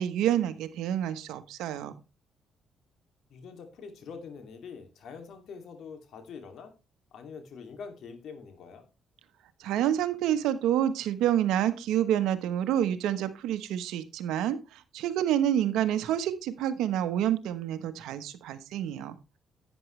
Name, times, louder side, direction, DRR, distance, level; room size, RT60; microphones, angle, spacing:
voice 1, 0.0-1.9 9.6-19.2, right 11 dB, 90° right, 11 dB, 1.1 m, -28 dB
voice 2, 3.3-6.7 7.1-8.9, left 5 dB, 70° left, 7 dB, 2.6 m, -44 dB
11.0 x 9.2 x 3.2 m, 0.27 s
cardioid pair, 90°, 0 cm